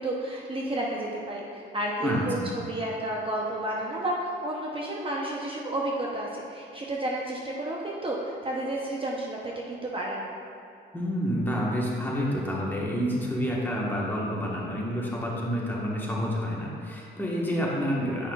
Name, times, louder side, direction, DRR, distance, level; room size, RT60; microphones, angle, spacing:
voice 1, 0.0-10.2, right 1 dB, 25° right, -2 dB, 0.7 m, -31 dB
voice 2, 2.0-2.5 10.9-18.3, equal, 10° left, -4 dB, 1.3 m, -29 dB
8.3 x 5.6 x 2.3 m, 2.8 s
cardioid pair, 90°, 20 cm